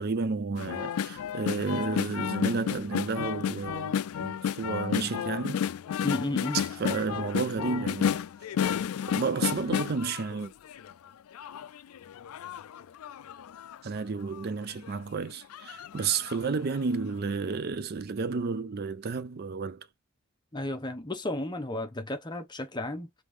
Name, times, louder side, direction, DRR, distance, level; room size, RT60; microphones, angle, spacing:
voice 1, 0.0-5.7 6.5-8.2 9.1-10.5 13.8-19.9, right 4 dB, 45° right, 0.4 m, -31 dB
sound 1, 0.6-10.9 11.3-13.8 14.3-14.4 14.7-15.0 15.5-16.5 16.8-16.9, left 8 dB, 75° left, 0.4 m, -32 dB
voice 2, 6.0-6.6 20.5-23.2, left 1 dB, 20° left, 0.8 m, -33 dB
3.6 x 3.4 x 3.1 m
head